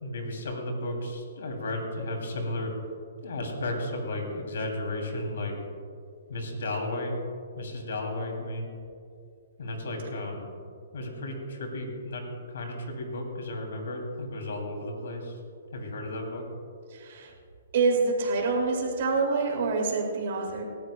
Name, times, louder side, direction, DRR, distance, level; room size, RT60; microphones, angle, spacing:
voice 1, 0.0-2.7 3.2-5.5 6.3-7.2 7.6-8.7 9.6-10.5 10.9-15.4 15.7-16.4, left 1 dB, 75° left, 3 dB, 2.7 m, -34 dB
voice 2, 16.9-17.3 17.7-20.6, right 3 dB, 55° right, 0 dB, 2.4 m, -26 dB
19.0 x 13.5 x 2.2 m, 2.3 s
hypercardioid pair, 135°, 0 cm